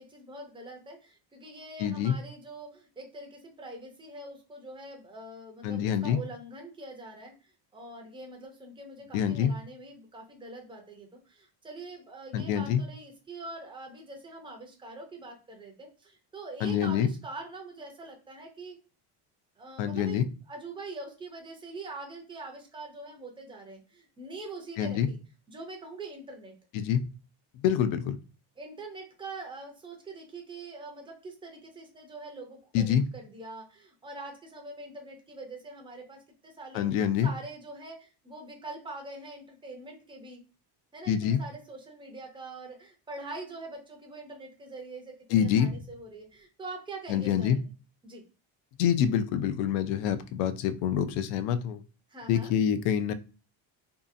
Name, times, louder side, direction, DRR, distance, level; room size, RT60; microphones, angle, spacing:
voice 1, 0.0-18.8 19.6-25.2 25.5-26.5 28.6-40.4 40.9-47.7 48.0-48.2 52.1-52.5, right 2 dB, 10° right, 2 dB, 0.4 m, -44 dB
voice 2, 1.8-2.2 5.6-6.2 9.1-9.5 12.3-12.8 16.6-17.1 19.8-20.3 24.8-25.1 26.7-27.0 27.5-28.2 32.7-33.0 36.7-37.3 41.1-41.4 45.3-45.7 47.1-47.6 48.8-51.8 52.3-53.1, left 9 dB, 85° left, 11 dB, 0.5 m, -26 dB
2.7 x 2.3 x 2.5 m, 0.34 s
cardioid pair, 160°, 48 cm